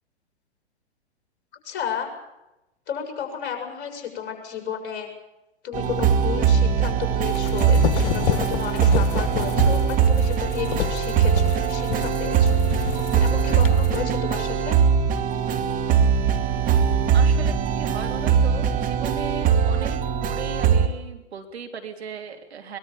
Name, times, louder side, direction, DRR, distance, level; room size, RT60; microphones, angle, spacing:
voice 1, 1.6-2.1 2.9-5.1 5.6-14.7, left 8 dB, 30° left, 4 dB, 6.5 m, -33 dB
sound 1, 5.7-20.9, right 7 dB, 25° right, 2.4 m, -21 dB
sound 2, 7.2-14.0, left 9 dB, 50° left, 1.6 m, -29 dB
voice 2, 17.1-22.8, right 6 dB, 70° right, 5 dB, 3.4 m, -36 dB
23.0 x 21.5 x 7.0 m, 0.94 s
figure-of-eight pair, 105°, 33 cm